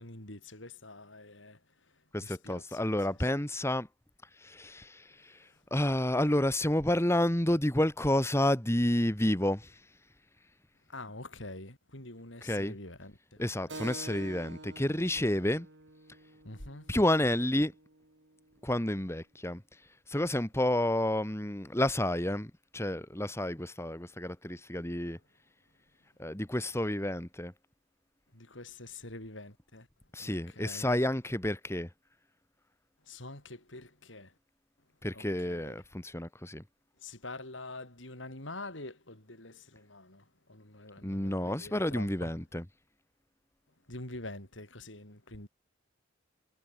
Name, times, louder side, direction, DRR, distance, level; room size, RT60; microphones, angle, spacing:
voice 1, 0.0-1.6 2.2-3.4 10.9-13.9 16.4-16.9 25.0-25.1 28.3-29.9 30.2-31.0 33.1-34.3 35.1-35.7 37.0-42.3 43.9-45.5, left 2 dB, 80° left, 6.8 m, -46 dB
voice 2, 2.1-3.9 4.4-5.4 5.7-9.8 12.4-12.7 13.4-15.7 16.9-17.7 18.6-19.6 20.1-25.2 26.2-27.5 30.1-31.9 35.0-36.6 41.0-42.6, left 1 dB, 15° left, 1.9 m, -30 dB
Keyboard (musical), 13.7-18.8, right 2 dB, 65° right, 4.0 m, -48 dB
head